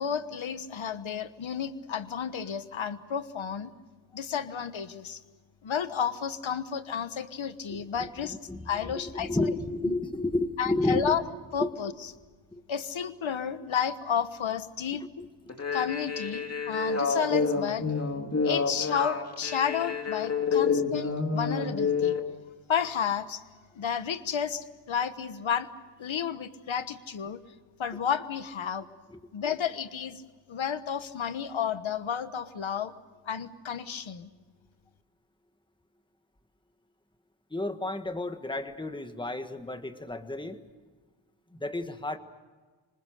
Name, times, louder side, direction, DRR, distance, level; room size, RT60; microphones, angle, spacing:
voice 1, 0.0-3.7 4.1-5.2 5.6-8.4 8.7-9.3 9.9-10.0 10.6-11.2 11.5-11.9 12.7-15.0 15.7-17.9 18.4-22.2 22.7-23.4 23.7-25.7 26.0-27.4 27.8-28.9 29.3-30.2 30.5-32.9 33.2-34.3, left 7 dB, 75° left, 11 dB, 1.3 m, -31 dB
voice 2, 7.7-11.2 11.6-11.7 12.5-12.6 15.2-15.5 20.5-20.6 29.1-29.2 37.5-40.6 41.5-42.2, left 2 dB, 10° left, 8 dB, 1.6 m, -32 dB
sound 1, 15.5-22.2, left 5 dB, 30° left, 2.8 m, -28 dB
26.0 x 26.0 x 6.6 m, 1.4 s
wide cardioid pair, 140°, 48 cm